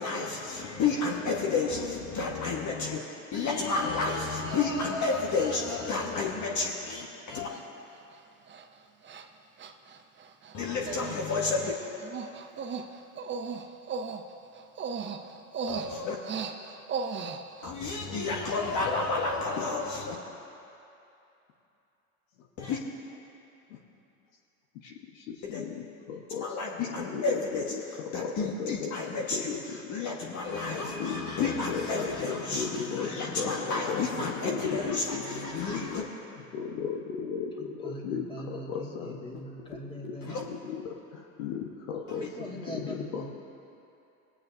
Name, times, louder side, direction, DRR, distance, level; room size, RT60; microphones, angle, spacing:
voice 1, 0.0-3.0 3.3-7.5 10.5-11.7 15.7-16.2 17.6-20.1 22.6-22.8 25.5-25.6 26.4-27.7 28.1-36.0 40.2-40.4 42.1-42.3, left 4 dB, 40° left, -1 dB, 1.5 m, -31 dB
Human voice, 5.7-5.8 6.6-6.9 7.5-7.6 8.0-8.2 8.5-8.6 9.0-9.3 9.6-10.6 10.9-11.2 11.4-17.7, right 5 dB, 25° right, 0.7 m, -37 dB
voice 2, 24.8-27.8 28.2-28.9 29.3-29.8 30.8-36.0 36.5-39.2 40.0-40.1 40.4-43.3, left 6 dB, 70° left, 0 dB, 1.2 m, -36 dB
voice 3, 32.1-33.7 34.1-35.9 37.6-40.4 42.2-43.3, equal, 10° left, -2 dB, 2.1 m, -44 dB
19.5 x 8.6 x 2.7 m, 2.8 s
hypercardioid pair, 85°, 44 cm